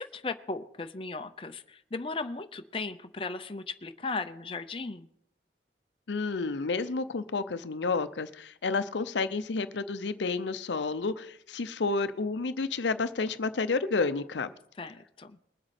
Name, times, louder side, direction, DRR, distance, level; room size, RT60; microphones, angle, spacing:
voice 1, 0.0-5.1 14.8-15.4, left 3 dB, 30° left, 8 dB, 0.6 m, -36 dB
voice 2, 6.1-14.5, left 4 dB, 85° left, 12 dB, 0.6 m, -30 dB
21.0 x 7.9 x 4.2 m, 0.73 s
head